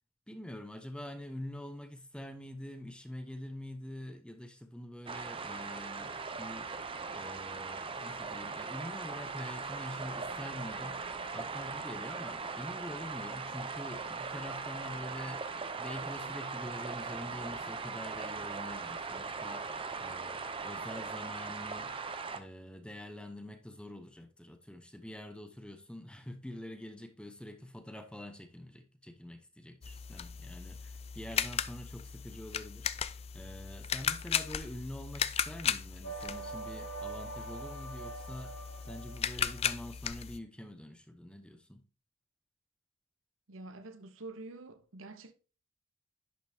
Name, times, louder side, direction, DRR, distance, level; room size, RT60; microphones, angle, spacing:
voice 1, 0.3-6.8 7.1-19.7 20.0-21.9 22.3-32.9 33.3-41.8, left 1 dB, 5° left, 0.8 m, -45 dB
sound 1, 5.1-22.4, right 4 dB, 25° right, 0.6 m, -39 dB
sound 2, 29.8-40.4, left 8 dB, 30° left, 0.3 m, -37 dB
sound 3, 36.0-39.7, right 3 dB, 85° left, 2.9 m, -44 dB
voice 2, 43.5-45.3, right 2 dB, 80° right, 0.9 m, -47 dB
10.5 x 5.2 x 2.8 m
head